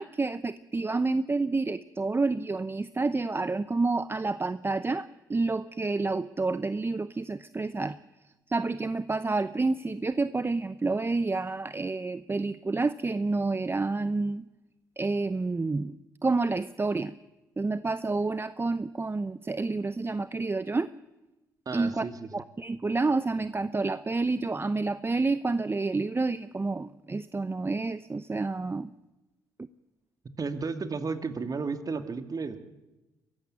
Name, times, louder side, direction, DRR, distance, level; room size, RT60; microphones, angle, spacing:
voice 1, 0.0-8.0 8.5-14.4 15.0-15.9 16.2-17.1 17.6-20.9 21.7-22.1 22.3-28.9, right 3 dB, 25° right, 15 dB, 0.8 m, -29 dB
voice 2, 21.7-22.3 30.4-32.6, right 4 dB, 40° right, 9 dB, 2.4 m, -33 dB
22.5 x 15.5 x 9.6 m, 1.0 s
hypercardioid pair, 50°, 9 cm